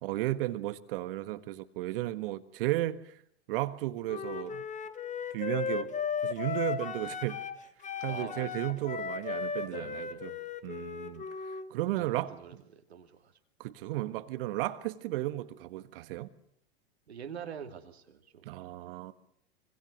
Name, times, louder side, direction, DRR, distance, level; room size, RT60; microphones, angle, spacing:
voice 1, 0.0-3.2 3.5-4.6 5.3-5.9 6.2-7.4 8.0-11.3 11.7-12.3 13.6-16.3 18.4-19.1, right 16 dB, 60° right, 1.6 m, -34 dB
Wind instrument woodwind instrument, 4.0-7.6 7.8-11.7, left 6 dB, 25° left, 1.9 m, -36 dB
voice 2, 8.1-9.2 9.7-10.5 11.9-13.3 17.1-18.5, right 8 dB, 80° right, 2.6 m, -46 dB
25.0 x 24.5 x 6.6 m
hypercardioid pair, 90°, 32 cm